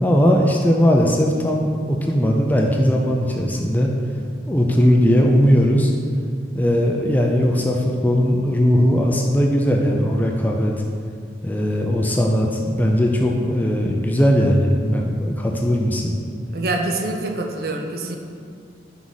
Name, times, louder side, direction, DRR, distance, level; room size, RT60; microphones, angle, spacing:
voice 1, 0.0-3.9 4.5-5.9 6.5-7.8 8.0-10.7 11.4-16.1, equal, 10° left, 0 dB, 0.4 m, -18 dB
voice 2, 16.5-18.2, right 2 dB, 55° right, 3 dB, 0.5 m, -25 dB
5.6 x 4.7 x 3.9 m, 2.2 s
head